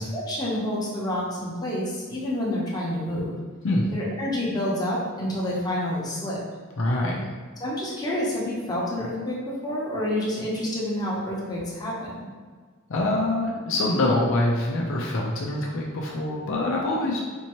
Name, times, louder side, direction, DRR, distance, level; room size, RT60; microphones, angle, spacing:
voice 1, 0.0-3.3 3.9-6.4 7.6-12.3, left 1 dB, 20° left, -6 dB, 0.9 m, -28 dB
voice 2, 6.8-7.2 12.9-17.2, left 2 dB, 60° left, -3 dB, 0.5 m, -25 dB
4.4 x 2.8 x 3.0 m, 1.5 s
head